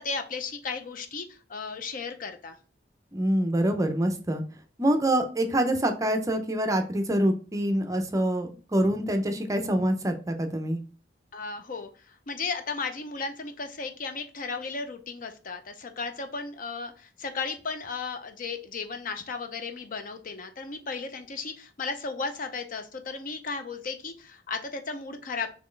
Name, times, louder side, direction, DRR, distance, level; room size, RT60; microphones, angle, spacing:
voice 1, 0.0-2.6 11.3-11.9 12.3-25.5, left 4 dB, 50° left, 7 dB, 0.6 m, -35 dB
voice 2, 3.1-4.4 4.8-10.8, right 1 dB, 20° right, 6 dB, 0.5 m, -25 dB
4.3 x 3.1 x 3.2 m, 0.37 s
head